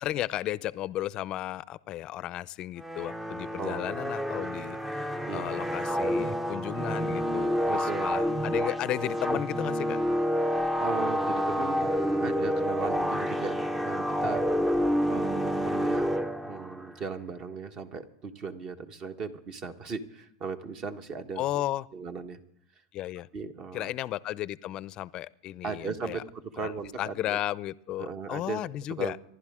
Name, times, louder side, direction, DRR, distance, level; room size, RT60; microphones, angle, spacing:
voice 1, 0.0-10.0 21.4-21.9 22.9-23.3 23.7-26.2 26.6-26.7 27.0-29.2, left 14 dB, 40° left, 19 dB, 0.5 m, -34 dB
sound 1, 2.8-16.9, equal, 10° right, 0.6 m, -29 dB
voice 2, 3.6-4.0 5.3-5.6 7.7-8.1 8.6-8.7 10.8-14.4 15.1-16.2 16.4-21.6 21.9-22.4 23.3-23.9 25.6-27.4 28.0-28.6 29.0-29.1, right 5 dB, 40° right, 8 dB, 1.4 m, -37 dB
26.0 x 11.5 x 3.7 m, 0.78 s
supercardioid pair, 120°, 2 cm